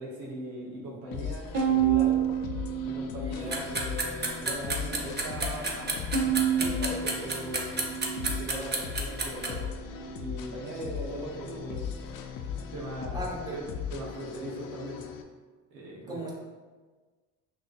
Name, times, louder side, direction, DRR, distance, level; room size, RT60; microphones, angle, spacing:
voice 1, 0.0-2.2 2.8-7.7 8.2-9.6 10.1-11.9 12.5-13.6 13.9-15.0 15.7-16.3, right 1 dB, 85° right, -3 dB, 1.1 m, -39 dB
sound 1, 1.1-15.2, left 7 dB, 60° left, 0.6 m, -38 dB
Bowed string instrument, 1.5-3.9 4.4-5.1 6.1-8.6, right 8 dB, 65° right, 1.2 m, -29 dB
voice 2, 3.2-3.7 13.1-13.6 16.1-16.3, right 1 dB, 10° right, -4 dB, 1.4 m, -36 dB
sound 2, 3.5-9.5, right 3 dB, 25° right, 0.8 m, -30 dB
5.7 x 2.9 x 2.5 m, 1.4 s
supercardioid pair, 70°, 38 cm